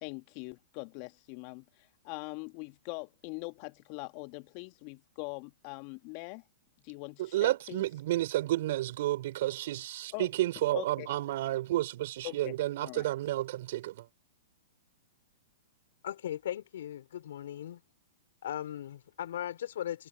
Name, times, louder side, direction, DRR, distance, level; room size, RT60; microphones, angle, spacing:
voice 1, 0.0-6.4 6.8-7.8 10.1-10.3 10.7-11.1 12.2-13.1, left 30 dB, 45° left, 1.9 m, -42 dB
voice 2, 7.2-14.1, right 15 dB, 55° right, 3.4 m, -31 dB
voice 3, 16.0-17.8 18.4-20.1, left 11 dB, 65° left, 3.8 m, -38 dB
hypercardioid pair, 115°, 0 cm